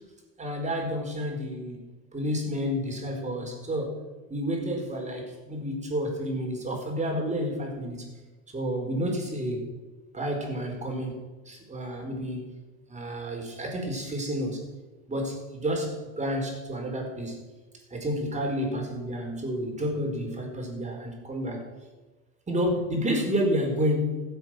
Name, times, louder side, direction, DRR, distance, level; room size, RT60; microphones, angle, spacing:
voice 1, 0.4-1.8 2.1-4.0 4.3-8.1 8.5-9.7 10.1-12.5 12.9-14.6 15.1-17.4 17.9-21.6 22.5-24.2, equal, 15° right, 2 dB, 4.6 m, -30 dB
15.5 x 8.3 x 7.7 m, 1.2 s
hypercardioid pair, 105°, 42 cm